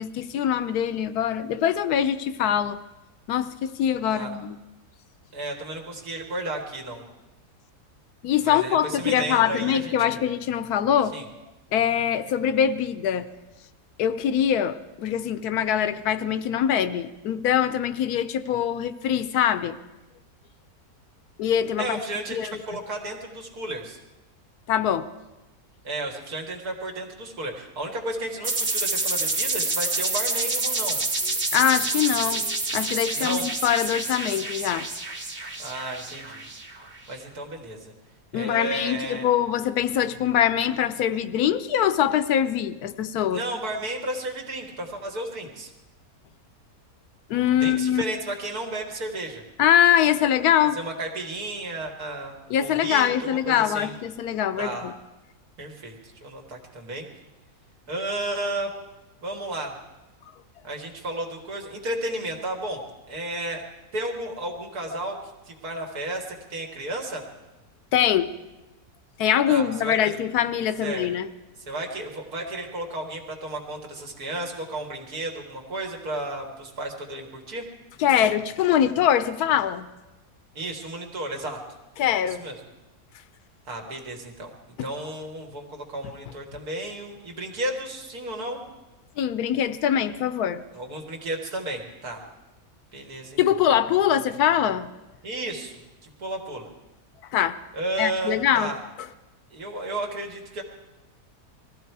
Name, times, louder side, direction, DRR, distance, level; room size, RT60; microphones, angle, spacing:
voice 1, 0.0-2.8 3.3-4.6 8.2-11.2 11.7-13.3 14.0-19.8 21.4-22.0 22.3-22.6 24.7-25.1 31.5-34.9 38.3-43.4 47.3-48.0 49.6-50.8 52.5-54.9 67.9-68.3 69.2-71.3 78.0-79.9 82.0-82.4 84.8-84.9 89.2-90.6 93.4-94.9 97.3-97.6 98.0-98.7, left 10 dB, 75° left, 14 dB, 1.2 m, -23 dB
voice 2, 5.3-7.0 8.4-10.2 11.1-11.3 21.8-24.0 25.8-31.0 33.1-33.5 35.6-36.4 37.1-37.9 38.3-39.3 43.3-45.7 47.6-49.4 50.7-53.9 54.6-54.9 55.6-55.9 56.2-57.1 57.9-58.7 59.2-59.7 60.6-62.8 63.1-63.6 63.9-65.2 65.5-67.2 69.5-70.2 70.8-71.1 71.6-77.6 80.5-81.6 82.3-82.6 83.7-88.6 90.7-92.2 92.9-93.4 95.2-96.7 97.7-98.8 99.5-100.6, right 1 dB, 70° right, 2 dB, 2.4 m, -33 dB
sound 1, 28.4-37.0, right 2 dB, 30° right, 1.4 m, -28 dB
20.0 x 14.5 x 4.7 m, 1.0 s
omnidirectional pair, 1.7 m